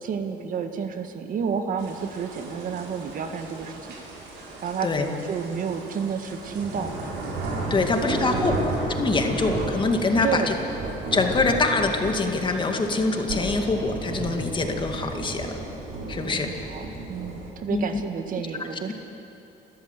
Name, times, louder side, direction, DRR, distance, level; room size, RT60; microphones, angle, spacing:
voice 1, 0.0-3.8 4.6-6.9 7.7-8.6 10.2-10.6 16.2-18.9, right 6 dB, 55° right, 6 dB, 1.7 m, -31 dB
sound 1, 1.8-17.5, right 2 dB, 80° right, 5.6 m, -33 dB
voice 2, 7.7-10.5 11.1-15.6 16.1-16.5 17.7-18.0, left 3 dB, 30° left, 4 dB, 2.3 m, -24 dB
29.0 x 14.0 x 8.2 m, 2.9 s
cardioid pair, 110°, 17 cm